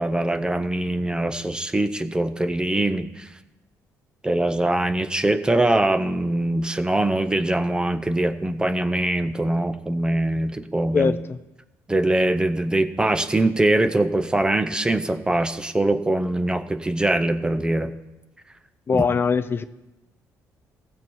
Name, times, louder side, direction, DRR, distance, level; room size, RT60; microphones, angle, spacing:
voice 1, 0.0-3.3 4.2-11.1 11.9-17.9 18.9-19.0, right 1 dB, 15° right, 11 dB, 0.7 m, -22 dB
voice 2, 10.9-11.4 18.9-19.6, left 5 dB, 35° left, 12 dB, 0.4 m, -22 dB
15.5 x 7.1 x 4.5 m, 0.99 s
cardioid pair, 95°, 6 cm